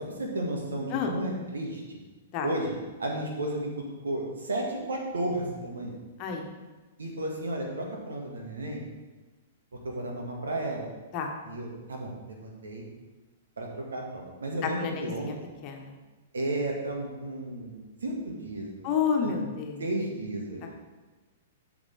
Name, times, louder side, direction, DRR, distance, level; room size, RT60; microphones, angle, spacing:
voice 1, 0.0-2.0 2.4-3.7 4.0-6.0 7.0-8.8 9.8-10.9 11.4-12.8 13.6-15.3 16.3-18.9 19.2-19.4 19.8-20.8, right 1 dB, 70° right, 0 dB, 2.2 m, -33 dB
voice 2, 6.2-6.5 11.1-11.3 14.6-15.3 15.6-16.0 18.8-19.8, left 6 dB, 35° left, 2 dB, 1.4 m, -30 dB
12.5 x 7.1 x 3.7 m, 1.2 s
figure-of-eight pair, 105°, 0 cm